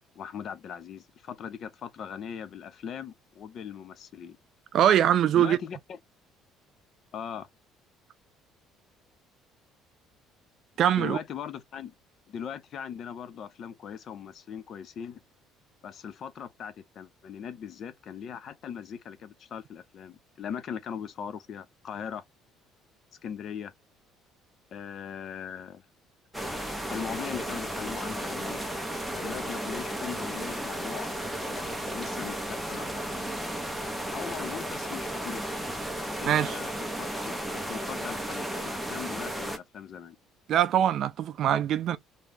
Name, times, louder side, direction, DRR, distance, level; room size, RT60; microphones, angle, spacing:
voice 1, 0.2-4.4 5.4-5.8 7.1-7.5 11.0-11.9 12.3-15.2 15.8-22.2 23.2-23.7 24.7-25.8 26.9-28.6 29.1-31.1 31.4-32.9 34.1-35.5 36.2-40.2, left 8 dB, 45° left, 0.5 m, -39 dB
voice 2, 4.7-5.6 10.8-11.2 36.3-36.6 40.5-42.0, right 10 dB, 50° right, 0.3 m, -23 dB
sound 1, 26.3-39.6, right 1 dB, ahead, 0.7 m, -34 dB
2.7 x 2.3 x 3.3 m
cardioid pair, 155°, 0 cm